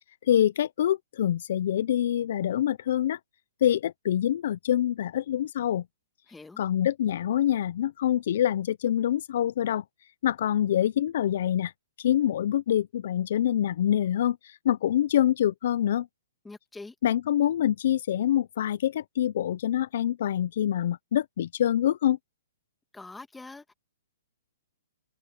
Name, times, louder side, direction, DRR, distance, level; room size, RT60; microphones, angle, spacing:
voice 1, 0.2-3.2 3.6-5.8 6.6-9.8 10.2-11.7 12.0-16.1 17.0-22.2, left 11 dB, 55° left, 0.4 m, -25 dB
voice 2, 6.3-6.6 16.4-17.0 22.9-23.7, left 3 dB, 5° left, 1.8 m, -44 dB
hypercardioid pair, 160°, 0 cm